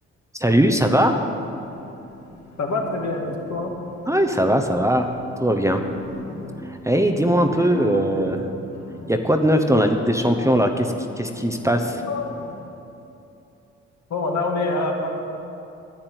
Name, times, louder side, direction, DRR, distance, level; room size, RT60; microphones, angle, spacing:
voice 1, 0.4-1.2 4.1-5.1 5.4-5.8 6.8-8.4 9.1-12.0, equal, 10° right, 5 dB, 1.0 m, -20 dB
sound 1, 1.0-12.6, left 2 dB, 85° left, 2.7 m, -39 dB
voice 2, 2.6-3.7 7.6-7.7 9.8-9.9 12.0-12.3 14.1-15.1, left 3 dB, 60° left, 0 dB, 2.2 m, -26 dB
10.5 x 8.6 x 8.1 m, 2.8 s
supercardioid pair, 60°, 31 cm